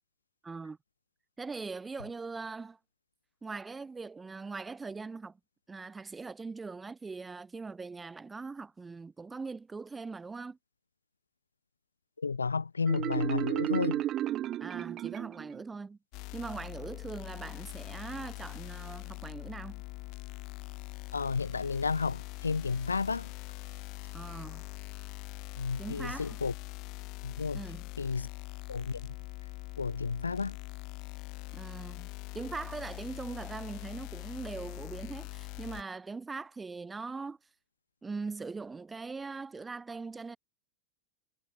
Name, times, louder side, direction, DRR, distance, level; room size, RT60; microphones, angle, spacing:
voice 1, 0.4-0.8 1.4-2.8 3.4-5.4 5.7-10.6 14.6-16.0 16.3-19.8 24.1-24.6 25.8-26.4 27.5-27.9 31.5-37.4 38.0-40.4, right 4 dB, 10° right, 2.2 m, -41 dB
voice 2, 12.2-14.0 21.1-23.3 25.6-26.5 27.2-27.6 28.0-28.3 28.7-29.0 29.8-30.6, left 5 dB, 75° left, 1.5 m, -32 dB
Marimba xylophone, 12.9-15.6, right 13 dB, 30° right, 1.1 m, -33 dB
sound 1, 16.1-35.8, left 25 dB, 40° left, 4.2 m, -43 dB
figure-of-eight pair, 90°, 0 cm